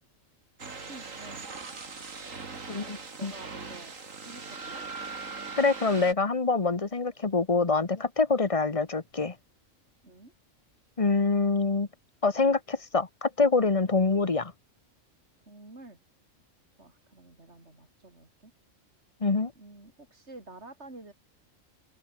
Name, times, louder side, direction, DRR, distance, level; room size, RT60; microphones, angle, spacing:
sound 1, 0.6-6.1, right 4 dB, 75° right, 3.0 m, -40 dB
voice 1, 0.8-1.5 2.5-3.9 4.2-4.9 10.0-10.3 15.5-16.0 16.8-18.5 19.6-21.1, right 2 dB, 55° right, 4.9 m, -49 dB
voice 2, 5.6-9.3 11.0-11.9 12.2-14.5 19.2-19.5, left 3 dB, 25° left, 1.2 m, -25 dB
open air
omnidirectional pair, 1.4 m